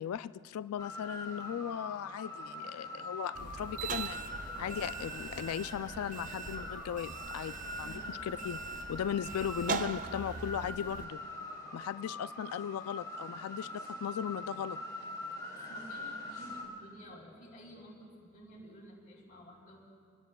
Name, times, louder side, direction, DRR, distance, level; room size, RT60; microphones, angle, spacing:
voice 1, 0.0-4.2 4.6-8.6 8.9-11.2 11.7-14.8, left 9 dB, 80° left, 15 dB, 0.3 m, -37 dB
sound 1, 0.8-16.7, left 1 dB, 15° left, 2.9 m, -43 dB
sound 2, 3.4-11.1, right 6 dB, 35° right, 0.4 m, -42 dB
voice 2, 15.7-19.8, right 1 dB, 35° left, -5 dB, 3.6 m, -52 dB
25.5 x 19.0 x 2.3 m, 2.2 s
head